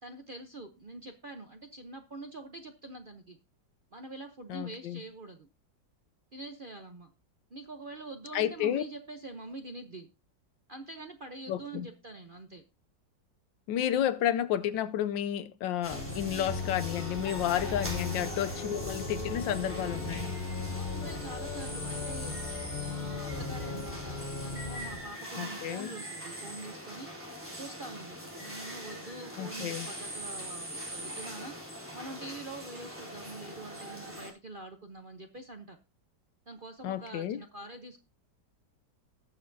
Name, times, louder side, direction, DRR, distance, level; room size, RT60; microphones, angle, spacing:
voice 1, 0.0-3.4 3.9-5.5 6.3-7.1 7.5-10.1 10.7-12.6 18.6-18.8 20.7-35.8 36.5-38.0, right 2 dB, 45° right, 0.7 m, -45 dB
voice 2, 4.5-5.0 8.3-8.8 11.5-11.9 13.7-20.3 25.4-25.9 29.4-29.9 36.8-37.4, left 11 dB, 85° left, 1.4 m, -31 dB
sound 1, 15.8-34.3, equal, 5° right, 3.2 m, -42 dB
Organ, 15.9-25.1, left 3 dB, 30° left, 1.0 m, -37 dB
19.5 x 6.7 x 2.7 m
omnidirectional pair, 2.0 m